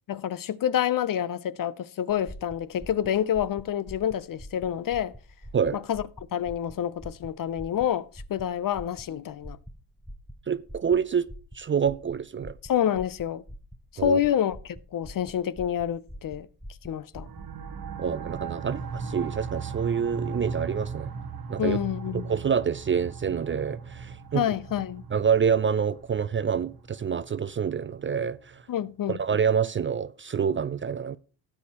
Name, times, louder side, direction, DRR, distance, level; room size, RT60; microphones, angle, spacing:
voice 1, 0.1-5.1 5.7-6.0 6.3-9.6 12.6-13.4 13.9-16.5 16.8-17.3 21.6-22.3 24.3-25.0 28.7-29.2, left 10 dB, 50° left, 0.6 m, -28 dB
sound 1, 2.1-17.5, equal, ahead, 0.7 m, -45 dB
voice 2, 10.5-12.6 14.0-14.2 18.0-21.1 21.5-21.8 22.1-24.5 25.1-28.6 29.1-31.2, right 7 dB, 30° right, 0.4 m, -27 dB
sound 2, 17.2-28.5, right 5 dB, 55° right, 1.3 m, -38 dB
13.0 x 8.7 x 2.9 m
cardioid pair, 70°, 43 cm